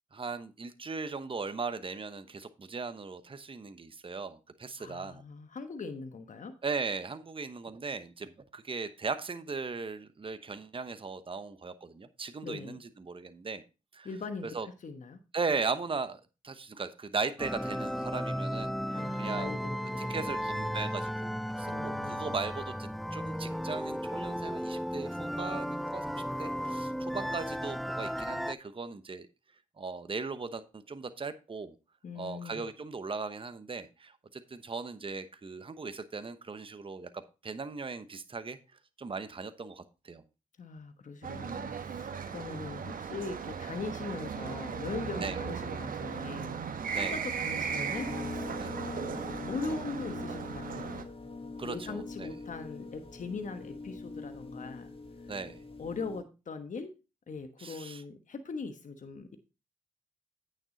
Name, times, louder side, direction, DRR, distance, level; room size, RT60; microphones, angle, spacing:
voice 1, 0.1-5.2 6.6-13.6 13.9-14.1 14.5-14.7 15.3-19.5 20.1-29.3 29.8-31.7 32.2-38.6 39.0-40.2 45.2-45.4 46.9-47.1 48.6-48.8 51.6-52.3 55.3-55.6 57.6-58.0, right 4 dB, 35° right, 12 dB, 0.9 m, -38 dB
voice 2, 4.8-6.5 12.4-12.8 14.0-15.2 18.9-20.3 21.6-22.3 32.0-32.7 40.6-51.0 51.6-54.9 55.2-55.3 55.8-56.9 57.3-59.4, left 4 dB, 55° left, 8 dB, 1.2 m, -41 dB
sound 1, 17.4-28.5, equal, ahead, 0.3 m, -35 dB
sound 2, 41.2-51.0, right 6 dB, 60° right, 1.1 m, -37 dB
sound 3, 47.9-56.2, left 3 dB, 35° left, 1.6 m, -42 dB
8.9 x 6.6 x 3.9 m, 0.29 s
supercardioid pair, 45°, 16 cm